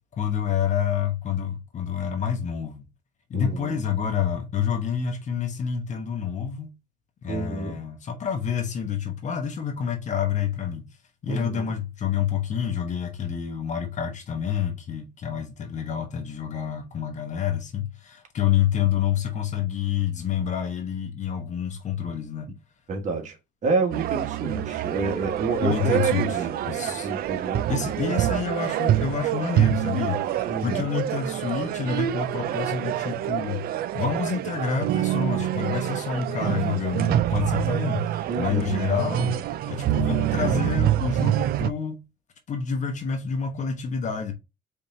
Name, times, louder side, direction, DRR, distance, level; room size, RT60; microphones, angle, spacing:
voice 1, 0.1-2.8 3.3-6.7 7.2-10.9 11.2-22.5 25.6-27.1 27.7-39.4 39.7-42.0 42.5-44.3, left 8 dB, 45° left, 1.2 m, -28 dB
voice 2, 3.3-3.8 7.2-7.8 11.3-11.6 22.9-23.3 23.6-26.6 27.0-27.9 30.4-30.9 38.3-38.8, right 4 dB, 45° right, 1.7 m, -29 dB
sound 1, 23.9-41.7, right 12 dB, 65° right, 0.4 m, -26 dB
4.6 x 3.5 x 2.7 m
cardioid pair, 110°, 17 cm